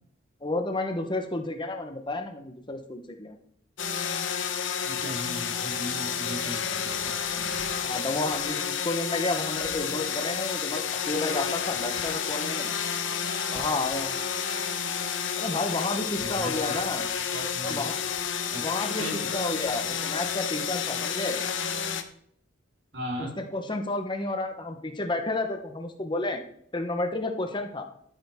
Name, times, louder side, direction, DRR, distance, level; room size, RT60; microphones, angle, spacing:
voice 1, 0.4-3.3 7.8-12.7 13.5-14.1 15.4-17.1 17.6-17.9 18.6-19.0 19.3-21.4 23.2-26.4 26.7-27.8, left 2 dB, 25° left, 5 dB, 1.1 m, -31 dB
sound 1, 3.8-22.0, left 7 dB, 80° left, 1.2 m, -30 dB
voice 2, 4.8-7.7 16.2-16.7 17.1-17.9 18.5-18.6 18.9-19.3 22.9-23.4, equal, 65° right, -1 dB, 4.1 m, -38 dB
13.5 x 8.7 x 3.7 m, 0.68 s
head